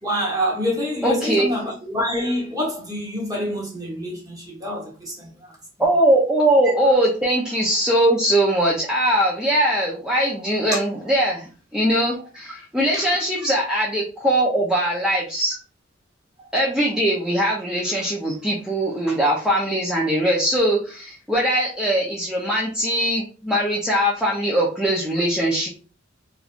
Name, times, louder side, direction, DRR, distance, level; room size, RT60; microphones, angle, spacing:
voice 1, 0.0-5.3 12.9-13.1, equal, 20° right, 1.2 m, -26 dB
voice 2, 1.0-1.5 5.8-15.5 16.5-25.7, right 1 dB, 5° right, 0.5 m, -21 dB
3.1 x 2.5 x 2.4 m
head